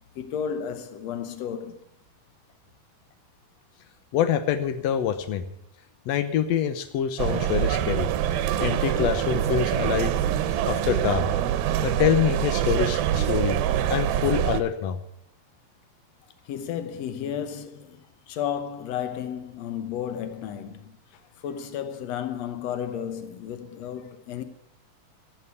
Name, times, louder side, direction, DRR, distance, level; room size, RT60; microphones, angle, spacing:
voice 1, 0.2-1.8 16.5-18.0 18.3-20.8 21.4-24.4, left 8 dB, 70° left, 1.7 m, -33 dB
voice 2, 4.1-5.4 6.1-8.1 8.6-10.1 10.7-11.2 11.8-13.6 13.9-15.0, left 9 dB, 90° left, 1.4 m, -25 dB
sound 1, 7.2-14.6, right 11 dB, 85° right, 2.6 m, -25 dB
14.5 x 7.8 x 8.2 m
omnidirectional pair, 4.2 m